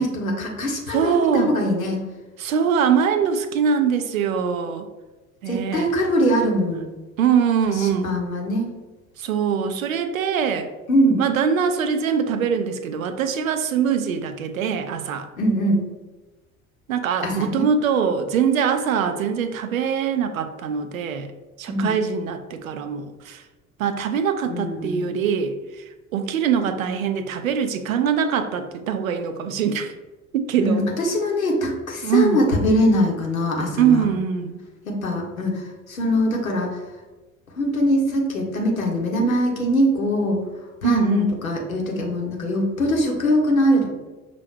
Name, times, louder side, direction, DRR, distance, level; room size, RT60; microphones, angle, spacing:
voice 1, 0.0-2.0 5.5-6.9 7.8-8.7 10.9-11.2 15.4-15.8 17.2-17.7 21.7-22.0 24.4-25.0 30.6-34.0 34.8-36.8 37.6-40.4 40.8-43.9, equal, 85° left, 0 dB, 0.8 m, -22 dB
voice 2, 0.9-1.5 2.4-4.9 5.4-5.9 7.2-8.1 9.2-10.7 11.2-15.3 16.9-21.3 21.6-23.4 23.8-25.8 26.1-29.9 30.3-30.9 32.0-32.4 33.8-34.6 40.8-41.3, right 7 dB, 75° right, 8 dB, 0.5 m, -22 dB
5.6 x 2.4 x 3.2 m, 1.2 s
figure-of-eight pair, 60°, 41 cm